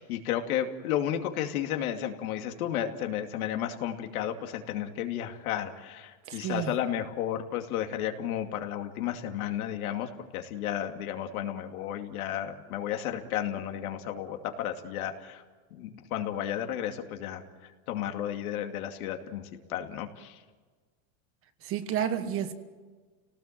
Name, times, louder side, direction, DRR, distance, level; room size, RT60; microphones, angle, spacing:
voice 1, 0.0-15.4 15.7-20.4, left 10 dB, 80° left, 2.6 m, -33 dB
voice 2, 6.3-6.8 21.6-22.5, right 9 dB, 30° right, 1.4 m, -31 dB
29.5 x 18.5 x 7.6 m
supercardioid pair, 160°, 43 cm